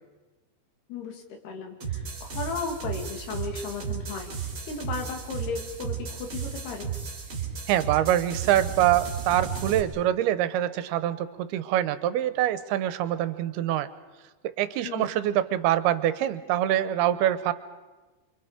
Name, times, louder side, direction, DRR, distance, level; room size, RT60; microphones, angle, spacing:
voice 1, 0.9-4.3 4.6-7.0 14.8-15.1, left 5 dB, 85° left, 4 dB, 4.3 m, -35 dB
sound 1, 1.8-9.8, right 7 dB, 35° right, 3.6 m, -34 dB
voice 2, 7.7-13.9 14.6-17.5, right 12 dB, 85° right, 13 dB, 2.8 m, -25 dB
28.0 x 25.0 x 5.0 m, 1.2 s
omnidirectional pair, 4.5 m